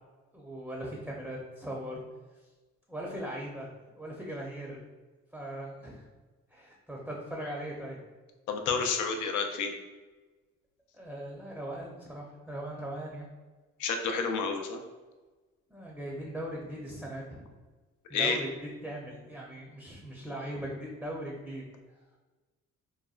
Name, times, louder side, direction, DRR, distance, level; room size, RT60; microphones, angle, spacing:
voice 1, 0.3-2.0 2.9-3.7 3.9-4.8 5.3-6.1 6.5-8.0 10.9-13.3 15.7-17.5 18.1-21.6, right 1 dB, 5° right, -3 dB, 0.6 m, -39 dB
voice 2, 8.5-9.7 13.8-14.8 18.1-18.4, left 5 dB, 80° left, 4 dB, 0.5 m, -29 dB
4.0 x 2.2 x 2.3 m, 1.3 s
cardioid pair, 90°, 30 cm